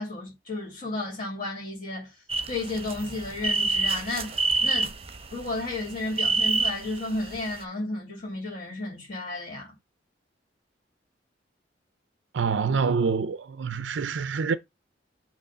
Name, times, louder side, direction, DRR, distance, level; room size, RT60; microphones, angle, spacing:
voice 1, 0.0-2.2 2.5-5.0 5.3-9.7, left 2 dB, 45° left, 2.9 m, -33 dB
sound 1, 2.3-5.5 5.9-7.1 7.3-7.4, right 4 dB, 35° right, 0.8 m, -26 dB
voice 2, 12.3-14.5, right 5 dB, 80° right, 0.5 m, -26 dB
6.5 x 3.1 x 5.5 m
head